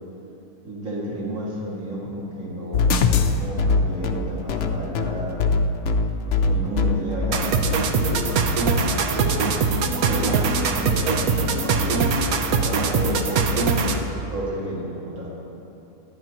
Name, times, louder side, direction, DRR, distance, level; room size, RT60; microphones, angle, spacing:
voice 1, 0.6-5.5 6.2-9.5 10.0-15.4, equal, 60° right, -6 dB, 2.6 m, -32 dB
sound 1, 2.7-8.8, left 4 dB, 60° left, 0.8 m, -22 dB
sound 2, 7.3-14.1, right 4 dB, 75° right, 1.2 m, -22 dB
24.0 x 9.5 x 2.9 m, 3.0 s
omnidirectional pair, 1.6 m